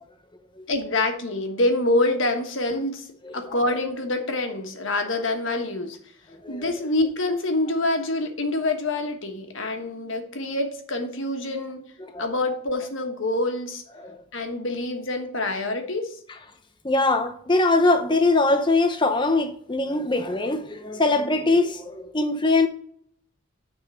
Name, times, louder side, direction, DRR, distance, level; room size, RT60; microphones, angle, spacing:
voice 1, 0.7-3.1 3.3-6.0 6.5-11.8 12.2-13.8 14.3-16.2, left 2 dB, 70° left, 1.3 m, -26 dB
voice 2, 16.8-22.7, left 2 dB, 20° left, 0.7 m, -22 dB
9.2 x 3.7 x 6.8 m
head